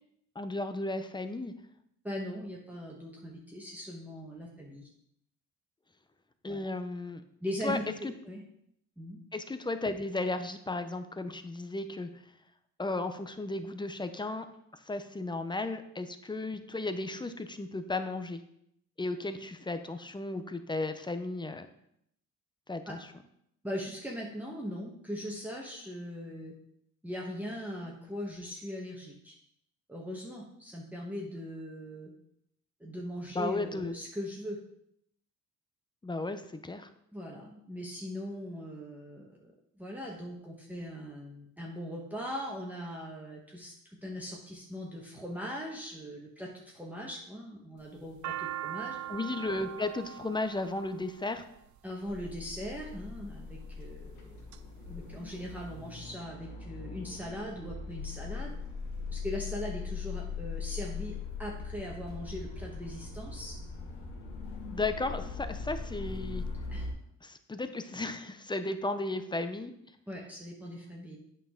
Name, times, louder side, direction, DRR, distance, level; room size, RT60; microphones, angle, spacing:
voice 1, 0.4-1.5 6.4-7.2 7.6-7.8 8.0-8.1 9.3-12.1 12.8-14.4 14.9-18.4 19.0-21.7 22.7-23.0 33.3-33.9 36.0-36.9 49.1-51.4 64.7-66.4 67.2-69.7, left 2 dB, 15° left, 9 dB, 0.6 m, -34 dB
voice 2, 2.0-4.8 6.5-6.6 7.4-8.4 9.0-9.2 22.9-23.0 23.6-26.5 27.0-29.3 29.9-32.1 32.8-34.6 37.1-43.7 44.0-49.0 51.8-58.5 59.1-61.1 61.4-63.5 66.7-66.9 70.1-71.2, equal, 5° right, -3 dB, 1.2 m, -40 dB
sound 1, 47.8-52.0 52.9-53.3 53.9-54.6 54.9-55.0 55.2-56.0, right 12 dB, 55° right, 0.6 m, -40 dB
sound 2, 52.1-66.9, left 4 dB, 75° left, 1.8 m, -40 dB
8.6 x 5.4 x 3.7 m, 0.75 s
cardioid pair, 105°, 34 cm